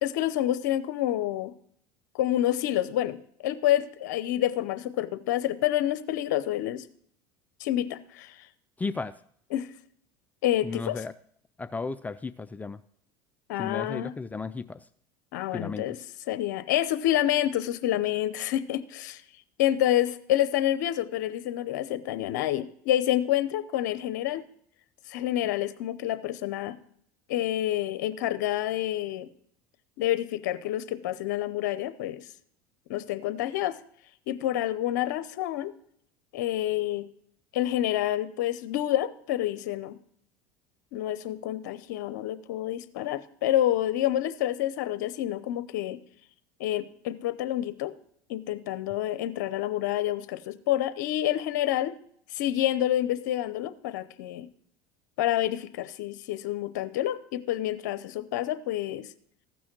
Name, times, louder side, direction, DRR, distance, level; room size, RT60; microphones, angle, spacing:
voice 1, 0.0-1.5 2.1-6.9 7.6-8.5 9.5-9.7 10.4-11.1 13.5-14.1 15.3-16.0 16.3-19.2 19.6-24.4 25.1-26.8 27.3-29.3 30.0-32.3 32.9-33.8 34.3-35.7 36.3-37.1 37.5-40.0 40.9-46.0 46.6-47.9 48.3-51.9 52.3-54.5 55.2-59.1, left 13 dB, 80° left, 13 dB, 0.6 m, -28 dB
voice 2, 8.8-9.1 10.6-11.1 11.6-12.8 13.6-14.8 15.5-15.9, left 4 dB, 15° left, 13 dB, 0.4 m, -34 dB
15.0 x 6.2 x 6.0 m, 0.63 s
supercardioid pair, 95°, 10 cm